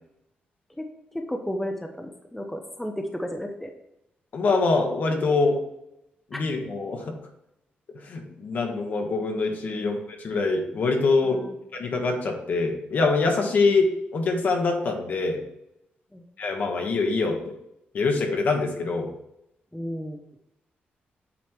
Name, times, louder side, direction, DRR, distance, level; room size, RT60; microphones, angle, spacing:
voice 1, 1.1-3.7 6.3-6.4 9.7-9.9 11.2-11.6 13.4-13.5 16.1-16.2 19.7-20.2, equal, 5° left, 3 dB, 0.7 m, -33 dB
voice 2, 4.3-5.6 6.3-7.1 8.1-11.4 11.7-15.4 16.4-17.5 17.9-19.1, left 3 dB, 55° left, 3 dB, 1.4 m, -24 dB
8.4 x 3.2 x 5.8 m, 0.82 s
wide cardioid pair, 140°, 4 cm